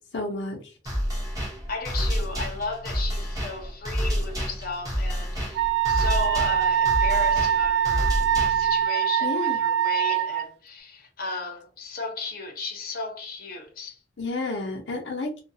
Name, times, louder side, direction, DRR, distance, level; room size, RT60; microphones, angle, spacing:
voice 1, 0.1-0.6 9.2-9.6 14.2-15.3, left 2 dB, 90° left, 0.6 m, -30 dB
sound 1, 0.9-8.8, equal, 20° right, 1.0 m, -29 dB
voice 2, 1.7-8.2 8.5-14.0, left 3 dB, 55° left, 0.8 m, -35 dB
Wind instrument woodwind instrument, 5.5-10.5, right 9 dB, 90° right, 0.3 m, -23 dB
2.3 x 2.2 x 2.6 m
head